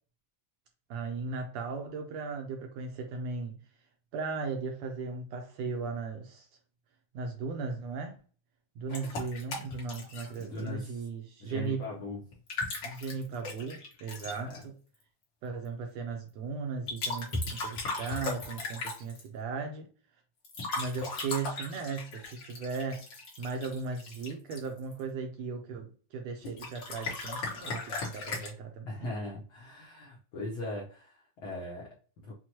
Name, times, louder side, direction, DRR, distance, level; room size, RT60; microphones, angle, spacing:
voice 1, 0.9-3.6 4.1-6.5 7.1-8.2 8.8-11.8 12.8-14.7 15.4-19.9 20.7-23.0 23.4-29.1, right 4 dB, 75° right, 3 dB, 1.6 m, -37 dB
sound 1, 8.9-10.7 12.3-14.6 16.9-19.3 20.4-25.0 26.4-28.5, left 3 dB, 55° left, 1.4 m, -37 dB
voice 2, 10.4-11.1 11.4-12.2 14.4-14.6 28.9-32.3, left 2 dB, 75° left, -3 dB, 1.1 m, -40 dB
6.1 x 2.1 x 2.8 m, 0.40 s
omnidirectional pair, 3.5 m